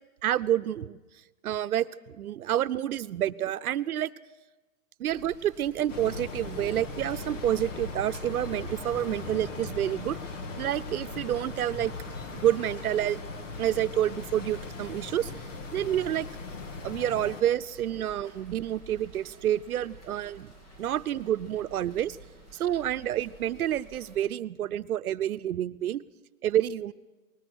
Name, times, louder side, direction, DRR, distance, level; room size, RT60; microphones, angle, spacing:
voice 1, 0.2-1.0 1.4-4.1 5.0-10.2 10.6-13.2 13.6-15.3 15.7-16.3 16.8-20.5 20.8-22.2 22.5-26.0 26.4-26.9, right 11 dB, 85° right, 14 dB, 0.8 m, -28 dB
sound 1, 5.1-24.2, right 2 dB, 25° left, 2.7 m, -51 dB
sound 2, 5.9-17.4, left 3 dB, 60° left, 1.9 m, -39 dB
21.0 x 19.5 x 6.3 m, 1.2 s
hypercardioid pair, 180°, 43 cm